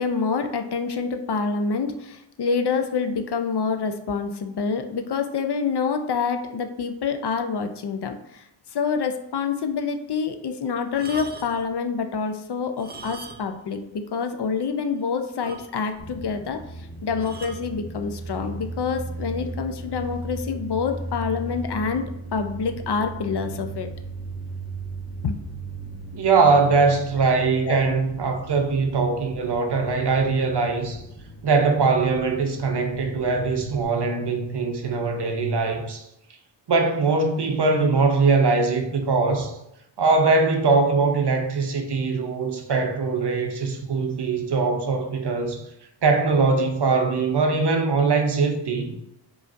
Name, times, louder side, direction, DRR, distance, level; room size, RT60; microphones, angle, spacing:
voice 1, 0.0-8.4 8.7-16.6 17.0-23.9 25.2-25.4 27.7-27.8, left 5 dB, 60° left, 0.5 m, -27 dB
sound 1, 10.9-11.7 12.7-13.7 13.9-14.1 14.6-14.7 14.9-15.0 15.4-16.1 17.2-17.7 18.5-18.8, right 4 dB, 25° right, 0.4 m, -40 dB
sound 2, 16.0-33.8, right 1 dB, 25° left, 0.8 m, -37 dB
voice 2, 26.1-31.0 31.4-36.1 36.7-39.5 40.0-45.6 46.0-49.0, right 4 dB, 60° right, 0.7 m, -21 dB
4.8 x 2.5 x 2.5 m
wide cardioid pair, 65°, 46 cm